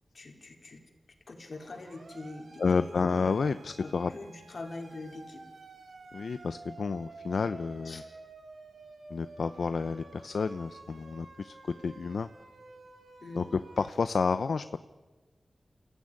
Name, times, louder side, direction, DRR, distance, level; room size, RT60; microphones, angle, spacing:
voice 1, 0.1-0.8 1.3-3.0 3.8-5.5 7.8-8.1 13.2-13.4, left 2 dB, 60° left, 3 dB, 3.7 m, -43 dB
Siren, 1.5-13.9, right 3 dB, 90° right, 4.1 m, -51 dB
voice 2, 2.6-4.1 6.1-8.0 9.1-12.3 13.3-14.8, left 4 dB, 80° left, 11 dB, 0.7 m, -30 dB
29.0 x 16.0 x 9.9 m, 1.3 s
wide cardioid pair, 100°, 0 cm